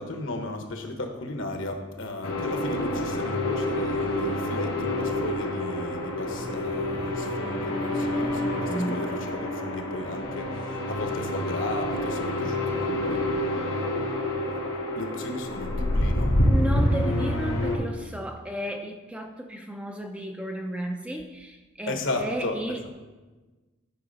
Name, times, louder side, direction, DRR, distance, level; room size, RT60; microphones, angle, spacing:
voice 1, 0.0-13.3 15.0-16.4 21.9-22.9, left 2 dB, 65° left, 4 dB, 1.2 m, -35 dB
sound 1, 2.2-17.8, left 1 dB, 85° left, 2.8 m, -27 dB
voice 2, 8.7-9.1 16.5-22.9, equal, 5° right, 4 dB, 0.5 m, -33 dB
12.0 x 5.8 x 4.1 m, 1.2 s
head